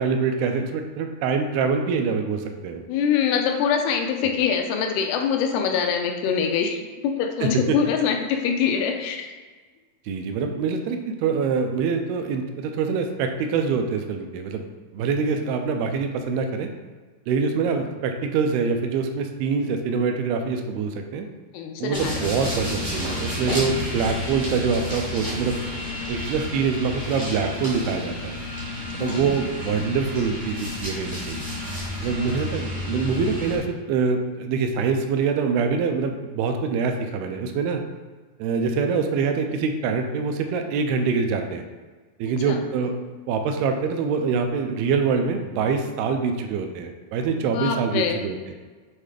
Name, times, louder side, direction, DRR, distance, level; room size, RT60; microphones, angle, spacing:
voice 1, 0.0-2.8 7.4-7.8 10.1-14.7 14.9-16.7 17.3-21.3 21.8-25.6 26.1-28.4 29.0-31.4 32.0-37.8 38.4-41.6 42.2-42.9 43.3-48.5, right 5 dB, 85° right, 5 dB, 2.4 m, -25 dB
voice 2, 2.9-6.8 7.0-9.3 21.5-22.1 29.0-29.2 32.0-32.1 42.5-42.6 47.4-48.2, left 7 dB, 85° left, 4 dB, 2.7 m, -24 dB
sound 1, 21.9-33.6, left 1 dB, 70° right, 0.3 m, -31 dB
7.9 x 3.2 x 4.9 m, 1.4 s
omnidirectional pair, 4.5 m